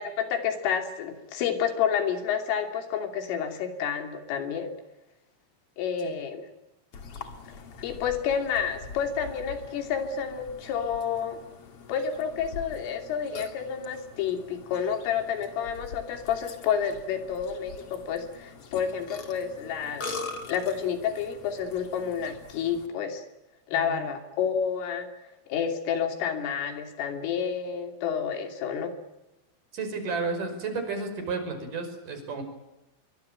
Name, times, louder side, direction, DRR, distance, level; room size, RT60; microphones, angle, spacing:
voice 1, 0.0-4.7 5.8-6.4 7.5-7.6 7.8-11.4 11.9-20.2 20.5-23.2 23.7-25.1 25.5-28.9, left 7 dB, 75° left, 6 dB, 5.4 m, -29 dB
Burping eructation, 6.9-22.9, left 4 dB, 45° left, 2.1 m, -43 dB
voice 2, 23.7-24.0 29.7-32.4, right 4 dB, 40° right, 5 dB, 6.6 m, -32 dB
25.0 x 23.5 x 9.0 m, 0.98 s
omnidirectional pair, 5.8 m